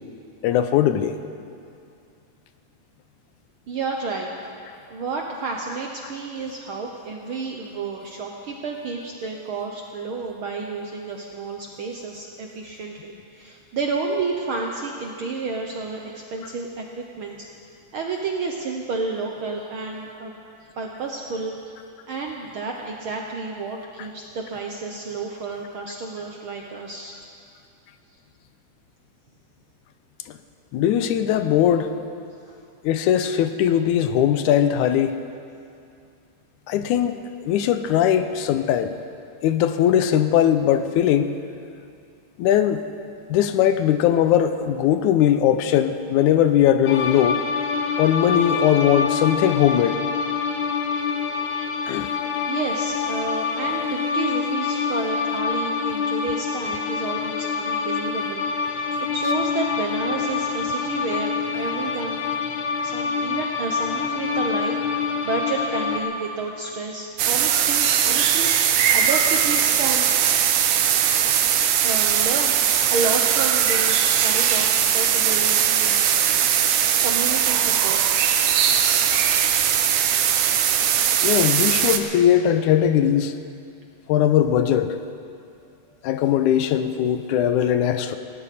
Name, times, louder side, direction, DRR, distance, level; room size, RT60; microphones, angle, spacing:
voice 1, 0.4-1.2 30.7-31.9 32.8-35.2 36.7-37.2 37.5-38.9 39.4-41.4 42.4-42.8 43.3-47.4 48.0-50.0 51.9-52.1 81.2-83.3 84.1-85.0 86.0-88.2, left 10 dB, 80° left, 10 dB, 2.1 m, -19 dB
voice 2, 3.7-4.3 4.9-17.4 17.9-20.3 20.8-21.8 22.1-27.2 32.5-32.6 52.5-62.2 62.8-70.1 71.8-76.0 77.0-78.2 85.9-86.0, right 3 dB, 65° right, 1 dB, 1.3 m, -31 dB
sound 1, 46.8-66.0, left 5 dB, 65° left, 1.1 m, -26 dB
sound 2, 67.2-82.0, right 9 dB, 85° right, 2.4 m, -20 dB
19.0 x 17.5 x 4.2 m, 2.5 s
omnidirectional pair, 3.5 m